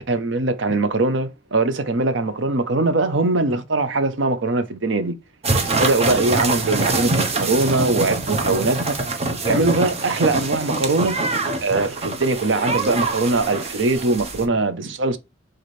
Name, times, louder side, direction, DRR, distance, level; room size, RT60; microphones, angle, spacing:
voice 1, 0.1-5.1 5.7-9.0 9.4-11.2 11.6-15.2, right 2 dB, 70° right, 0.7 m, -21 dB
sound 1, 5.4-14.4, right 3 dB, 35° right, 0.8 m, -24 dB
3.9 x 3.2 x 4.1 m
head